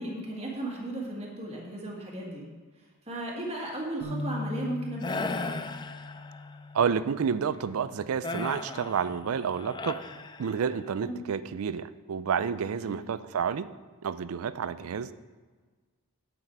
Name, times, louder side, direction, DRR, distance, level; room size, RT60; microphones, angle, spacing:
voice 1, 0.0-2.4 2.8-5.7 11.0-11.2 12.8-13.0, right 1 dB, 30° right, -3 dB, 1.9 m, -36 dB
sound 1, 4.0-10.3, left 2 dB, 55° right, 1.5 m, -41 dB
sound 2, 5.0-6.6 8.2-10.9, left 3 dB, 20° left, 0.3 m, -37 dB
voice 2, 6.7-10.0 10.4-13.7 14.0-15.1, right 6 dB, 70° right, 15 dB, 0.4 m, -30 dB
8.9 x 8.0 x 4.6 m, 1.4 s
head